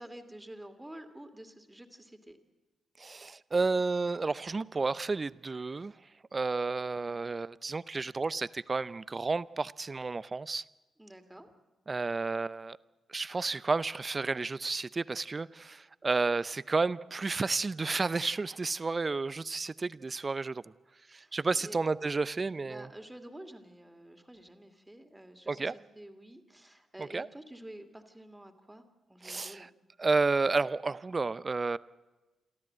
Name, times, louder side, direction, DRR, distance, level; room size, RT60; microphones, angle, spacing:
voice 1, 0.0-2.4 11.0-11.5 21.2-21.8 22.6-28.8 29.1-29.7, right 1 dB, 10° right, 2.6 m, -49 dB
voice 2, 3.0-5.9 6.3-10.6 11.9-12.8 13.1-20.6 21.1-22.9 25.5-25.7 27.0-27.3 29.2-29.7 30.0-31.8, right 3 dB, 35° right, 0.6 m, -31 dB
28.0 x 13.0 x 7.6 m
hypercardioid pair, 45°, 0 cm